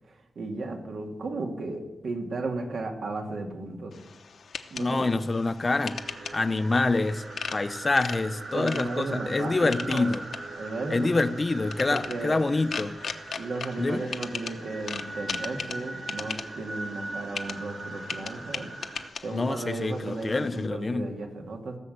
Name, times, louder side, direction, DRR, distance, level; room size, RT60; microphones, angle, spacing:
voice 1, 0.1-3.9 4.7-5.2 8.5-10.1 10.6-11.3 11.9-12.4 13.4-18.7 19.2-21.8, right 3 dB, 85° right, 2.2 m, -34 dB
sound 1, 3.9-20.7, left 5 dB, 75° left, 0.9 m, -40 dB
voice 2, 4.8-6.0 6.3-7.2 7.5-10.2 10.9-13.0 13.8-14.1 19.3-21.1, left 3 dB, 30° left, 0.6 m, -26 dB
sound 2, 5.8-19.1, right 2 dB, 55° right, 2.0 m, -40 dB
17.5 x 7.1 x 7.9 m
wide cardioid pair, 160°, 0 cm